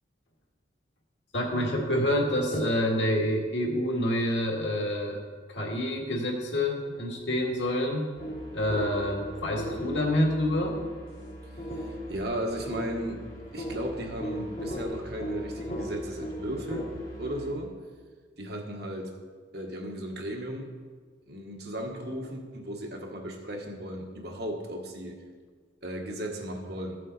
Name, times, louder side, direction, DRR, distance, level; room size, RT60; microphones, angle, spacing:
voice 1, 1.3-5.2 5.5-8.1 8.5-10.8, left 1 dB, 80° left, 0 dB, 2.0 m, -27 dB
sound 1, 8.2-17.5, equal, 50° left, 2.5 m, -37 dB
voice 2, 11.8-13.2 13.5-16.9 17.2-17.8 18.4-19.1 19.5-20.7 21.3-25.2 25.8-27.0, equal, 60° right, 2 dB, 1.5 m, -35 dB
14.0 x 7.4 x 4.1 m, 1.5 s
head